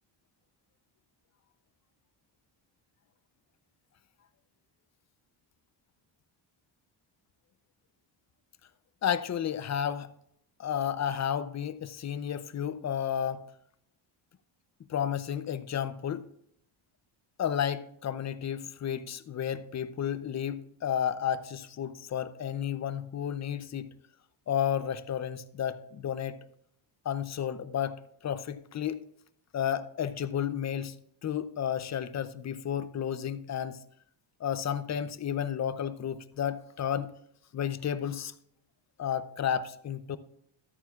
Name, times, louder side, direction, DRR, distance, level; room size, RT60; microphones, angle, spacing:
voice 1, 9.0-10.1 10.6-13.5 14.9-16.3 17.4-23.9 24.5-26.4 27.0-29.0 29.5-33.8 34.4-37.1 37.5-38.3 39.0-40.2, left 9 dB, 35° left, 0.5 m, -32 dB
13.0 x 8.9 x 2.3 m
cardioid pair, 145°, 47 cm